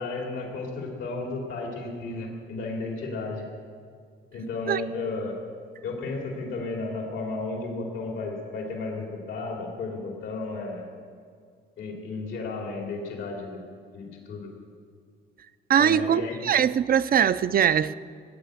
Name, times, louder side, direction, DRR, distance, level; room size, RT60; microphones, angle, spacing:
voice 1, 0.0-3.4 4.3-5.4 5.8-10.9 11.8-13.6 13.9-14.5 15.8-16.4, left 3 dB, 85° left, 0 dB, 3.0 m, -33 dB
voice 2, 15.7-18.0, right 9 dB, 50° right, 15 dB, 0.5 m, -21 dB
18.5 x 9.1 x 7.9 m, 2.1 s
cardioid pair, 90°, 20 cm